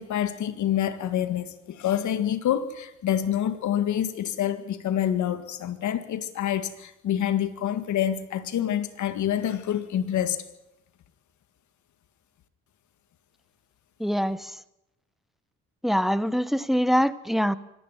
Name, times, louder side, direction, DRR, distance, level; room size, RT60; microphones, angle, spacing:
voice 1, 0.0-10.4, left 10 dB, 70° left, 2.0 m, -27 dB
voice 2, 14.0-14.6 15.8-17.5, equal, ahead, 1.0 m, -24 dB
25.5 x 11.5 x 9.2 m
cardioid pair, 90°, 30 cm